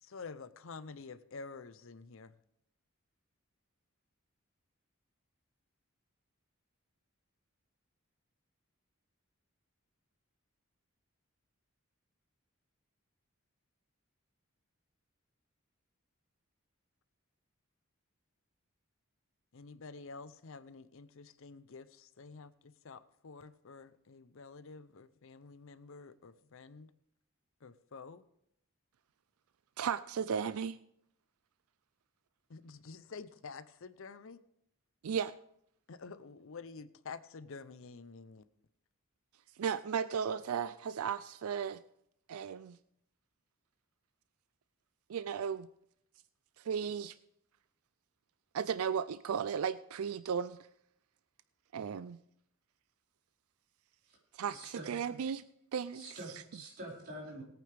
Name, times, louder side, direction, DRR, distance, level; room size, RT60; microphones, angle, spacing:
voice 1, 0.0-2.3 19.5-26.9 27.6-28.2 32.5-34.4 35.9-38.4, left 4 dB, 65° left, 0.6 m, -49 dB
voice 2, 29.8-30.8 35.0-35.3 39.6-41.8 42.3-42.8 45.1-45.7 46.6-47.2 48.5-50.6 51.7-52.2 54.3-55.4 55.7-56.2, right 7 dB, 90° right, 0.4 m, -35 dB
voice 3, 54.5-54.9 55.9-57.4, right 1 dB, 50° right, 4.5 m, -46 dB
20.5 x 9.1 x 3.4 m
head